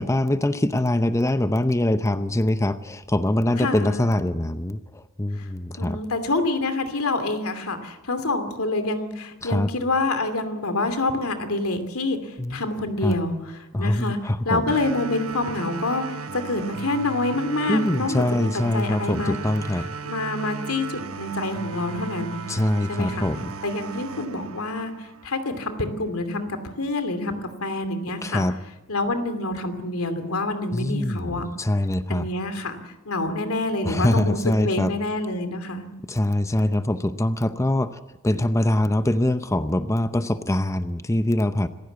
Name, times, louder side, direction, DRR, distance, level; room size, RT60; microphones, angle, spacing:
voice 1, 0.0-6.0 9.4-9.7 12.4-12.6 13.0-13.2 13.7-14.6 17.7-19.9 22.5-23.5 28.2-28.6 30.7-32.3 33.8-34.9 36.1-41.7, left 1 dB, 15° left, 11 dB, 0.7 m, -23 dB
voice 2, 3.6-4.1 5.4-5.5 5.8-14.2 14.4-19.3 20.0-22.4 22.9-23.3 23.6-28.4 28.9-31.5 32.1-35.9, left 2 dB, 90° left, 9 dB, 2.7 m, -27 dB
sound 1, 14.7-25.7, right 5 dB, 80° right, 1.2 m, -36 dB
26.5 x 15.5 x 8.1 m, 1.1 s
head